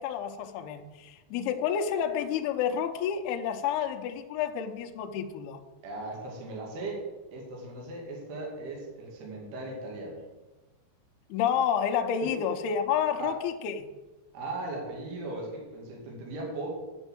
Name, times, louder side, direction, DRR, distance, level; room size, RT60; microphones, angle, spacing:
voice 1, 0.0-5.6 11.3-13.9, left 8 dB, 80° left, 5 dB, 2.4 m, -29 dB
voice 2, 5.8-7.1 7.3-10.2 12.2-12.4 13.2-13.4 14.3-16.7, right 2 dB, 65° right, -1 dB, 4.1 m, -38 dB
10.5 x 5.4 x 7.6 m, 1.1 s
omnidirectional pair, 5.2 m